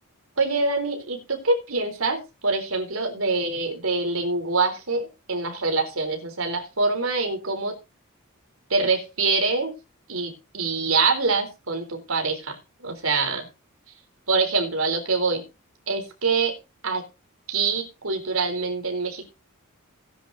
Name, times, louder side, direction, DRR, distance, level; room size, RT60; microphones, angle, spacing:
voice 1, 0.4-7.7 8.7-9.7 10.1-12.6 12.8-13.5 14.3-15.4 15.9-16.5 16.8-17.0 17.5-19.3, right 3 dB, 70° right, 4 dB, 3.9 m, -25 dB
18.0 x 10.0 x 2.8 m, 0.28 s
head